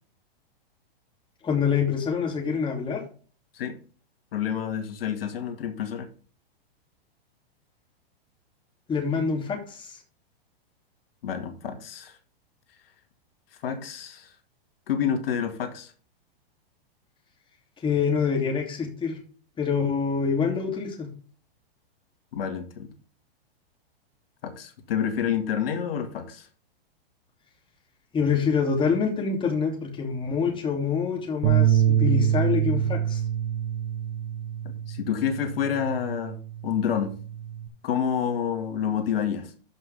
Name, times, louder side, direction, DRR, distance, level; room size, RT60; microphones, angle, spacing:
voice 1, 1.4-3.0 8.9-10.0 17.8-19.2 19.6-21.1 28.1-33.2, left 6 dB, 15° left, 1 dB, 3.0 m, -26 dB
voice 2, 4.3-6.1 11.2-12.2 13.6-14.3 14.9-15.9 22.3-22.9 24.4-26.5 34.6-36.4 36.6-37.1 37.8-39.5, left 8 dB, 70° left, 6 dB, 2.2 m, -28 dB
sound 1, 31.4-37.7, right 10 dB, 60° right, 2.6 m, -26 dB
13.5 x 5.9 x 3.6 m, 0.40 s
hypercardioid pair, 135°, 30 cm